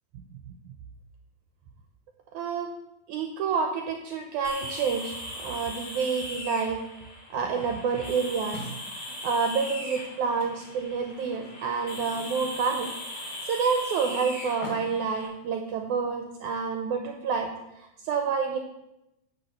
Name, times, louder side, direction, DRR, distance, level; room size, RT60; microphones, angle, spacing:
voice 1, 2.3-2.7 3.1-6.8 7.3-8.6 9.0-12.9 13.2-17.5 17.8-18.6, right 5 dB, 75° right, 4 dB, 2.0 m, -28 dB
sound 1, 4.4-15.3, left 1 dB, 40° left, 3.5 m, -39 dB
sound 2, 8.5-16.3, left 1 dB, 65° left, 3.1 m, -47 dB
9.5 x 4.8 x 7.8 m, 0.90 s
omnidirectional pair, 3.8 m